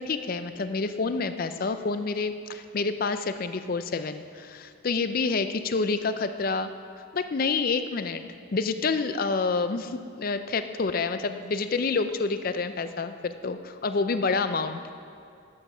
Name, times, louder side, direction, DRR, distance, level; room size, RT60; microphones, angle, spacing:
voice 1, 0.0-6.7 7.1-8.2 8.5-14.8, left 4 dB, 45° left, 10 dB, 0.4 m, -28 dB
11.5 x 8.1 x 5.5 m, 2.4 s
head